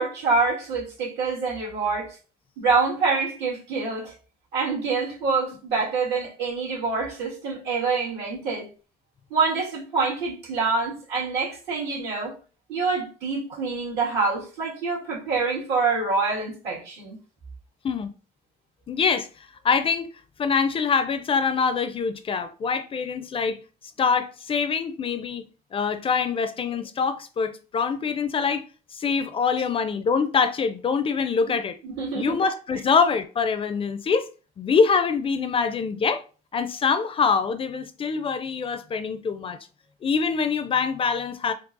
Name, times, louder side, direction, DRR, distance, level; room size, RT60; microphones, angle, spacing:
voice 1, 0.0-2.2 2.6-4.1 4.5-8.7 9.3-12.3 12.7-17.2 31.8-32.3, right 4 dB, 80° right, 2.0 m, -26 dB
voice 2, 18.9-19.3 19.6-20.1 20.4-23.6 24.0-25.4 25.7-28.6 28.9-31.8 32.1-34.3 34.6-36.2 36.5-39.6 40.0-41.5, left 5 dB, 35° left, 0.4 m, -24 dB
4.6 x 2.4 x 2.6 m
cardioid pair, 110°, 17 cm